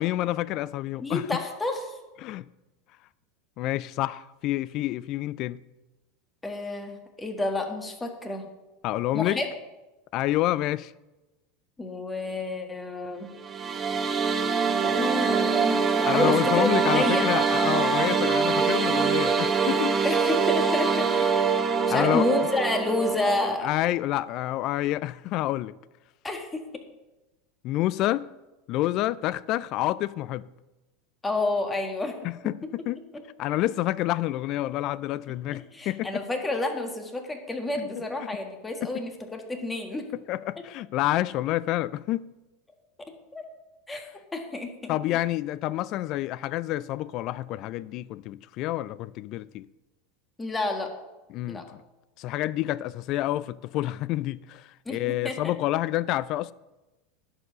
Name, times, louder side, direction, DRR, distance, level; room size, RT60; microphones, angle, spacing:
voice 1, 0.0-1.2 2.2-2.5 3.6-5.6 8.8-9.4 10.1-10.9 16.0-20.0 21.9-22.3 23.6-25.7 27.6-28.3 28.7-30.4 32.2-33.0 33.4-36.2 38.8-38.9 40.3-42.3 44.9-49.7 51.3-51.8 52.2-56.5, left 15 dB, 50° left, 0.3 m, -28 dB
voice 2, 1.0-1.9 6.4-8.5 9.1-9.5 11.8-13.3 14.8-17.3 20.0-21.3 21.9-23.7 26.2-26.6 31.2-32.1 32.4-32.5 33.1-33.2 35.7-40.1 43.3-43.4 43.9-44.0 44.3-45.0 50.4-50.9 51.5-51.6 54.8-55.4, left 2 dB, 15° left, 1.7 m, -29 dB
sound 1, 13.4-23.6, right 5 dB, 25° right, 1.0 m, -24 dB
11.0 x 4.8 x 6.6 m
hypercardioid pair, 95°, 0 cm